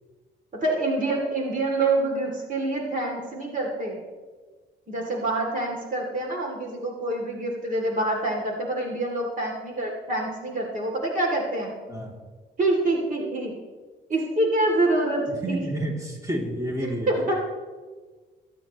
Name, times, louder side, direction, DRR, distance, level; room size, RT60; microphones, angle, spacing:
voice 1, 0.5-4.0 4.9-11.7 12.6-13.5 14.1-15.6 16.8-17.3, right 2 dB, 40° right, 0 dB, 2.9 m, -26 dB
voice 2, 15.3-17.2, right 1 dB, 15° right, -2 dB, 3.0 m, -30 dB
22.5 x 9.1 x 3.1 m, 1.4 s
cardioid pair, 90°, 20 cm